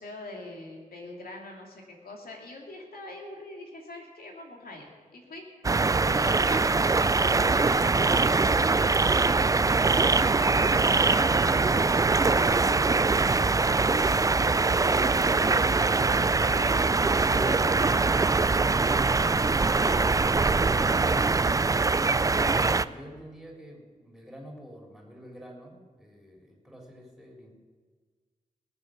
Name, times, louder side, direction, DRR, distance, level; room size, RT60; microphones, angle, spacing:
voice 1, 0.0-5.4 6.1-9.9 10.3-12.5 14.0-16.8 17.1-20.2, left 2 dB, 85° left, 0 dB, 2.6 m, -43 dB
sound 1, 5.6-22.8, right 3 dB, 25° right, 0.3 m, -23 dB
voice 2, 22.5-27.5, equal, ahead, -1 dB, 3.6 m, -47 dB
20.0 x 7.3 x 6.5 m, 1.5 s
cardioid pair, 60°, 15 cm